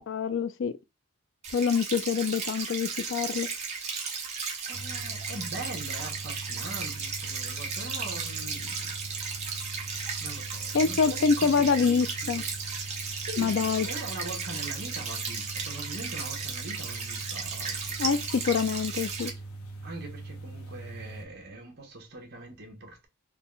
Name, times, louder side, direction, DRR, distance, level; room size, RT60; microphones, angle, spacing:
voice 1, 0.1-0.8 1.5-3.5 10.7-12.4 13.4-13.9 18.0-19.3, left 5 dB, 55° left, 0.3 m, -26 dB
sound 1, 1.4-19.3, right 5 dB, 30° right, 0.8 m, -35 dB
sound 2, 4.7-21.3, right 2 dB, 80° left, 0.8 m, -42 dB
voice 2, 4.7-8.9 10.2-12.4 13.2-18.2 19.8-23.1, right 2 dB, 45° right, 1.1 m, -42 dB
3.8 x 2.1 x 3.8 m
head